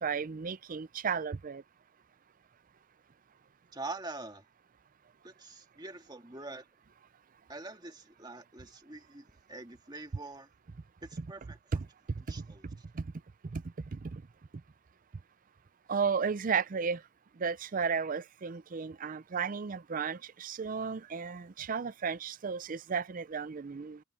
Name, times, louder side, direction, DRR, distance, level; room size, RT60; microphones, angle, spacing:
voice 1, 0.0-1.6 11.2-11.3 11.7-11.9 12.4-12.5 12.9-13.1 13.5-13.6 13.9-14.2 15.9-17.0 17.4-24.0, right 5 dB, 40° right, 0.5 m, -34 dB
voice 2, 3.7-4.5 5.2-6.6 7.5-10.5 11.0-11.8 12.3-12.6, right 2 dB, 20° right, 1.8 m, -45 dB
head